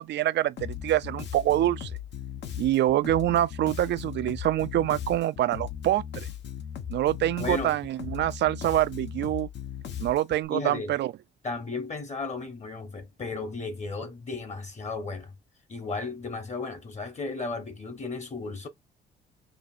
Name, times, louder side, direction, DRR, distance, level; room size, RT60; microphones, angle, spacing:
voice 1, 0.0-1.9 2.6-6.0 6.9-9.5 10.0-11.1, right 13 dB, 60° right, 0.4 m, -25 dB
Bass guitar, 0.6-10.5, left 9 dB, 65° left, 1.1 m, -38 dB
voice 2, 7.4-7.8 10.5-11.0 11.4-15.3 15.7-18.7, left 3 dB, 35° left, 1.4 m, -34 dB
5.1 x 2.6 x 2.6 m
cardioid pair, 90°, 20 cm